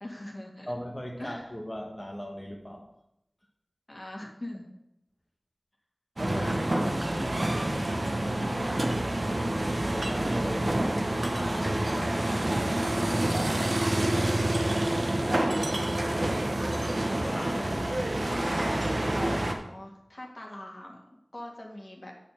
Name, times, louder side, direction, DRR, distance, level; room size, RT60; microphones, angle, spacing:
voice 1, 0.0-0.7 1.2-1.5 3.9-4.7 19.1-21.0 21.3-22.1, left 1 dB, 50° left, -1 dB, 2.1 m, -42 dB
voice 2, 0.7-2.9 6.2-7.8 8.2-9.1 9.9-13.2 13.5-14.8 15.4-16.6 17.0-18.2, equal, 15° left, -2 dB, 1.3 m, -39 dB
sound 1, 6.2-19.5, right 1 dB, 60° right, 1.0 m, -28 dB
8.6 x 4.3 x 7.2 m, 0.82 s
wide cardioid pair, 45°, 0 cm